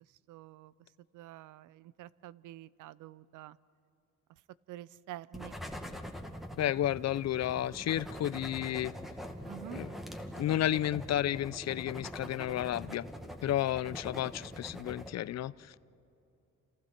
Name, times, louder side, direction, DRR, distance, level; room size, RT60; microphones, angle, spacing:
voice 1, 0.3-0.7 1.1-3.6 4.7-5.6 9.4-9.8, right 14 dB, 85° right, 19 dB, 0.6 m, -48 dB
sound 1, 5.3-15.1, equal, ahead, 1.9 m, -44 dB
voice 2, 6.6-8.9 9.7-9.9 10.4-13.1 13.4-15.8, left 12 dB, 60° left, 19 dB, 0.6 m, -32 dB
29.5 x 27.5 x 4.5 m, 2.7 s
cardioid pair, 90°, 30 cm